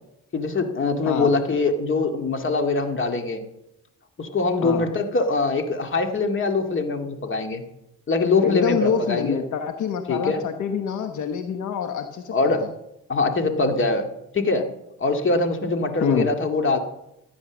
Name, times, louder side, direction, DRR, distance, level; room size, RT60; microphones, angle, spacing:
voice 1, 0.3-3.4 4.2-7.6 8.1-9.4 10.1-10.4 12.3-12.7 13.1-14.1 14.3-14.7 15.0-16.8, left 3 dB, 40° left, 5 dB, 2.2 m, -23 dB
voice 2, 8.4-12.7 16.0-16.3, left 7 dB, 75° left, 7 dB, 1.2 m, -26 dB
14.0 x 10.0 x 6.2 m, 0.85 s
cardioid pair, 90°, 30 cm